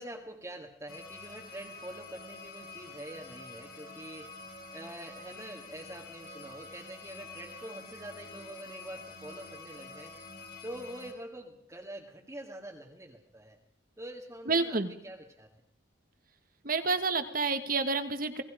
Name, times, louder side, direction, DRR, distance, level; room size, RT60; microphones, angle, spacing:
voice 1, 0.0-4.4 4.7-10.2 10.6-13.6 14.0-14.8 15.0-15.5, right 1 dB, 15° right, -2 dB, 2.0 m, -45 dB
sound 1, 0.9-11.1, left 3 dB, 50° left, 4.0 m, -47 dB
voice 2, 14.5-14.9 16.6-18.4, right 4 dB, 50° right, 9 dB, 1.8 m, -29 dB
28.5 x 19.0 x 5.1 m, 0.63 s
head